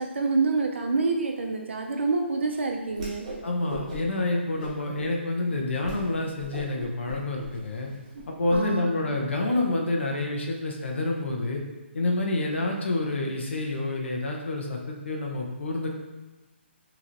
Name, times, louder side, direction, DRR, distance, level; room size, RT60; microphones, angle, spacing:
voice 1, 0.0-3.3 8.5-9.0, right 3 dB, 70° right, 2 dB, 0.6 m, -27 dB
Whoosh swoosh swish, 2.9-3.4 3.7-4.2 4.6-5.1 5.5-5.6 5.8-6.0 6.3-8.6, right 1 dB, 20° right, 1.0 m, -39 dB
voice 2, 3.4-7.9 8.3-11.6 11.9-15.9, left 2 dB, 65° left, 0 dB, 0.9 m, -28 dB
6.0 x 3.1 x 2.6 m, 1.2 s
hypercardioid pair, 175°, 7 cm